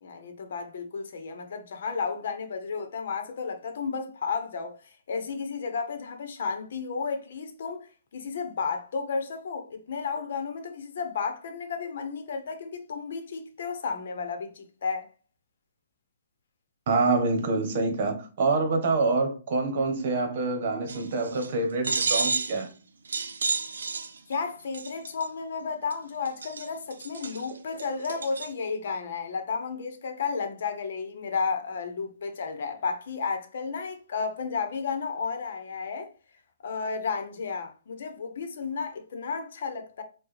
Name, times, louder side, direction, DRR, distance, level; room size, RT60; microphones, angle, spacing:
voice 1, 0.0-15.1 24.3-36.1 36.6-40.0, left 5 dB, 65° left, 0.9 m, -33 dB
voice 2, 16.9-22.7, right 3 dB, 50° right, 1.1 m, -26 dB
sound 1, 20.9-21.5 21.8-22.6 23.1-24.3 24.7-25.3 25.9-26.0 26.3-28.5, right 4 dB, 90° right, 0.5 m, -31 dB
4.7 x 2.3 x 3.2 m
hypercardioid pair, 150°, 0 cm